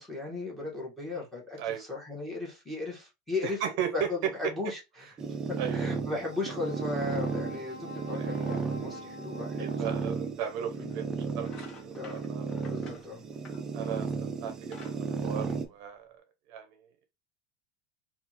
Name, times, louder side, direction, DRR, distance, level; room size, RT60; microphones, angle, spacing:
voice 1, 0.0-3.6 3.9-5.1 5.5-10.1 10.7-10.9 11.9-12.2 12.7-13.2, left 3 dB, 5° left, 1.4 m, -36 dB
voice 2, 3.4-3.9 5.6-5.9 8.1-8.3 9.6-11.0 11.4-12.5 13.7-16.1 16.5-16.7, right 9 dB, 60° right, 0.6 m, -36 dB
sound 1, 5.2-15.7, right 5 dB, 20° right, 0.4 m, -34 dB
Brass instrument, 5.9-10.3, left 2 dB, 75° left, 1.0 m, -46 dB
sound 2, 10.8-11.0 11.4-14.1 14.5-16.1, left 4 dB, 30° left, 0.9 m, -52 dB
3.6 x 2.4 x 2.9 m
supercardioid pair, 150°, 3 cm